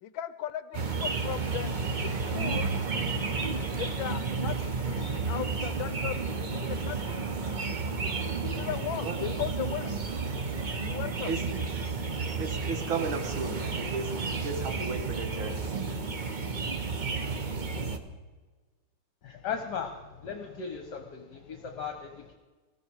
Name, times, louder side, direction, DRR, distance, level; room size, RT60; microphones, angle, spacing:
voice 1, 0.0-1.7 2.0-2.7 3.8-7.0 8.4-9.9 10.8-11.3, left 11 dB, 75° left, 13 dB, 1.3 m, -37 dB
sound 1, 0.7-18.0, right 4 dB, 45° right, 0.6 m, -32 dB
voice 2, 12.4-15.6, right 4 dB, 70° right, 6 dB, 2.4 m, -34 dB
voice 3, 19.2-19.9 20.2-22.3, left 6 dB, 55° left, 4 dB, 1.6 m, -37 dB
20.0 x 14.5 x 4.8 m, 1.3 s
omnidirectional pair, 2.3 m